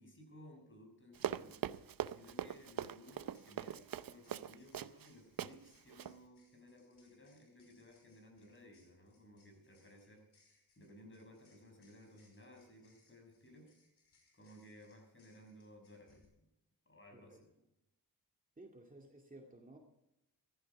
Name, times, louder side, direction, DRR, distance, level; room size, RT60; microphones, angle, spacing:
voice 1, 0.0-1.7 2.1-13.8 14.3-16.4 16.9-17.5, left 1 dB, 30° left, 2 dB, 6.3 m, -59 dB
Run, 1.2-5.1 5.4-5.5 5.9-6.1, right 10 dB, 60° right, 0.7 m, -41 dB
sound 1, 1.7-1.8 2.6-16.3, left 3 dB, 80° left, 5.4 m, -74 dB
voice 2, 17.1-17.4 18.6-19.8, right 2 dB, 20° right, 1 dB, 2.3 m, -56 dB
15.5 x 14.0 x 4.7 m, 0.86 s
cardioid pair, 85°, 39 cm